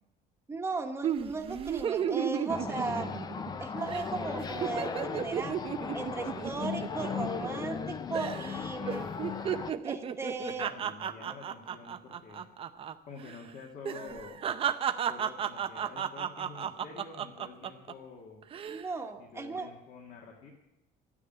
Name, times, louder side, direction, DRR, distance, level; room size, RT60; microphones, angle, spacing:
voice 1, 0.5-3.1 3.6-5.6 5.9-9.1 9.8-10.7 18.7-19.7, right 3 dB, 15° right, 4 dB, 1.3 m, -36 dB
sound 1, 1.0-3.6 3.9-4.1 4.4-7.8 8.1-8.6 8.9-12.9 13.2-13.4 13.8-17.9 18.4-18.8, right 8 dB, 30° right, 0.6 m, -34 dB
sound 2, 2.5-9.7, left 6 dB, 25° left, 0.5 m, -37 dB
voice 2, 10.4-12.4 13.1-14.4 15.1-18.4 19.2-20.5, left 5 dB, 55° left, 0 dB, 1.9 m, -48 dB
12.5 x 9.7 x 9.0 m, 0.89 s
cardioid pair, 160°, 18 cm